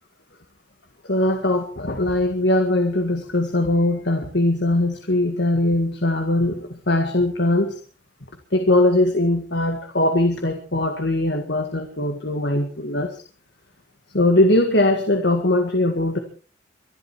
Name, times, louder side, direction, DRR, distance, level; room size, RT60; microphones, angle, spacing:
voice 1, 1.1-6.6 6.9-7.7 8.5-13.1 14.1-16.2, left 1 dB, 55° left, 6 dB, 1.9 m, -20 dB
24.0 x 12.0 x 4.6 m, 0.38 s
head